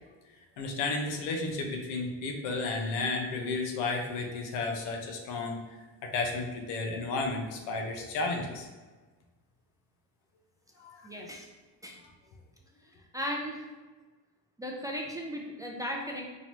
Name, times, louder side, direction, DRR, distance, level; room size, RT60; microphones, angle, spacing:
voice 1, 0.6-8.7 10.8-11.1, left 3 dB, 85° left, 2 dB, 0.8 m, -33 dB
voice 2, 11.0-11.5 11.8-12.0 12.8-13.7 14.6-16.3, equal, 10° right, -1 dB, 0.4 m, -36 dB
4.2 x 3.0 x 3.0 m, 1.3 s
cardioid pair, 95°, 43 cm